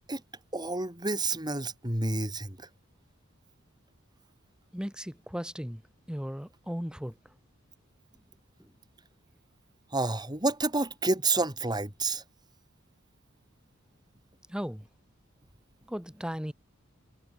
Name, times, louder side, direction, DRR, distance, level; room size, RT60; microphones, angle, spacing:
voice 1, 0.5-2.7 9.9-12.2, right 2 dB, 20° right, 6.6 m, -29 dB
voice 2, 4.7-5.8 6.1-7.1 8.6-8.7 14.5-14.9 15.8-16.5, equal, 5° right, 2.6 m, -36 dB
head